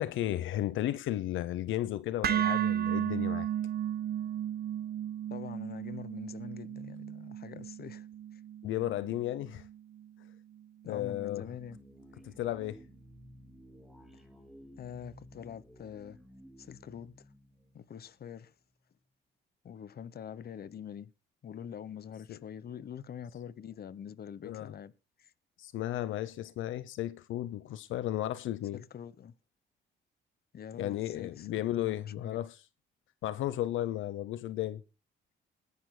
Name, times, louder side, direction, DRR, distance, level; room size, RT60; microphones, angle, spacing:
voice 1, 0.0-3.5 8.6-9.7 10.8-11.5 12.2-12.8 22.3-22.4 24.4-24.7 25.6-28.8 30.8-32.6 33.2-34.8, left 13 dB, 80° left, 0.8 m, -34 dB
sound 1, 2.2-10.3, right 10 dB, 50° right, 0.7 m, -34 dB
voice 2, 5.3-8.1 8.3-8.4 10.8-11.8 14.8-16.2 16.6-17.3 17.7-18.5 19.6-21.1 21.4-24.9 25.2-25.3 28.7-29.3 30.5-31.5 31.8-32.4, left 8 dB, 50° left, 1.1 m, -45 dB
sound 2, 11.3-18.4, equal, ahead, 3.1 m, -55 dB
21.5 x 11.0 x 2.2 m
cardioid pair, 90°, 20 cm